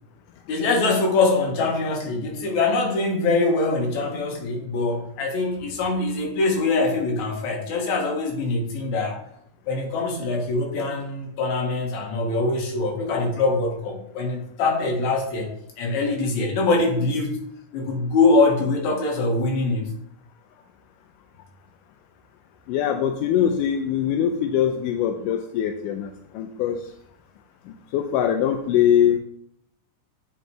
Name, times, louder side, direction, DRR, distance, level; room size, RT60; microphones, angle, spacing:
voice 1, 0.5-9.2 9.7-15.5 15.8-17.4 17.7-19.9, left 3 dB, 65° left, 1 dB, 2.7 m, -23 dB
voice 2, 22.7-26.1 26.4-26.8 27.9-29.2, left 9 dB, 85° left, 5 dB, 2.2 m, -22 dB
8.0 x 5.4 x 4.5 m, 0.71 s
omnidirectional pair, 3.7 m